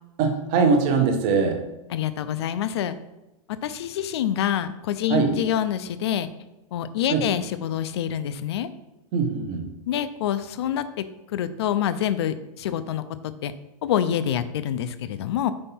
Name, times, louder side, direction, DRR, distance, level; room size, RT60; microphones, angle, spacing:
voice 1, 0.2-1.6 5.1-5.4 7.1-7.3 9.1-9.7, right 5 dB, 25° right, 5 dB, 0.7 m, -22 dB
voice 2, 1.9-3.0 3.6-6.3 6.7-8.7 9.9-11.0 11.3-13.0 13.4-13.5 13.8-15.5, left 10 dB, 45° left, 13 dB, 0.4 m, -26 dB
5.4 x 4.6 x 4.3 m, 0.96 s
supercardioid pair, 170°, 19 cm